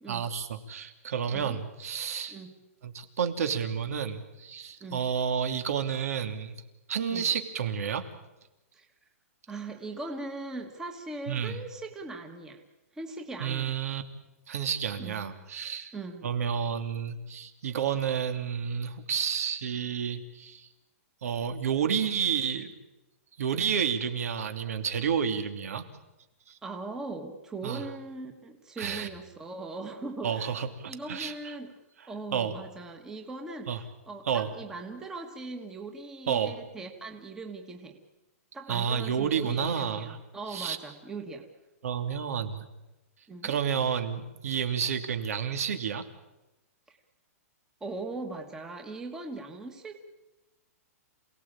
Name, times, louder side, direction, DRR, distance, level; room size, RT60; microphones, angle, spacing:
voice 1, 0.1-2.4 2.8-6.5 6.9-8.1 11.3-11.6 13.4-14.0 14.5-15.9 16.2-20.7 21.2-22.7 23.4-25.8 26.5-26.6 27.6-27.8 28.8-29.1 30.2-31.5 32.3-32.5 33.7-33.8 34.3-34.5 36.3-36.6 38.7-40.2 40.5-40.8 41.8-42.6 43.4-46.0, right 7 dB, 75° right, 7 dB, 2.8 m, -30 dB
voice 2, 9.5-12.6 12.9-13.8 15.0-15.3 15.9-16.3 26.6-30.6 30.8-31.7 32.1-38.0 38.5-41.5 43.3-43.5 47.8-50.0, right 3 dB, 5° right, 4 dB, 1.5 m, -40 dB
27.5 x 18.0 x 8.9 m, 1.0 s
hypercardioid pair, 175°, 8 cm